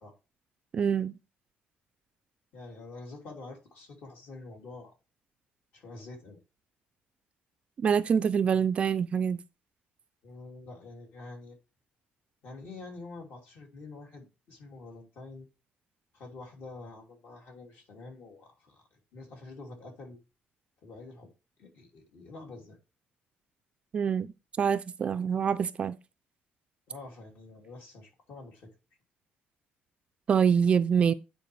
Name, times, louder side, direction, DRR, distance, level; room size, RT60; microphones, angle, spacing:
voice 1, 0.7-1.2 7.8-9.4 23.9-26.0 30.3-31.1, right 7 dB, 30° right, 0.4 m, -25 dB
voice 2, 2.5-4.9 5.7-6.4 10.2-11.6 12.4-15.5 16.1-18.8 19.1-20.2 20.8-21.3 21.6-22.8 26.9-28.7, left 3 dB, 55° left, 2.9 m, -46 dB
9.1 x 4.7 x 3.3 m
cardioid pair, 165°, 4 cm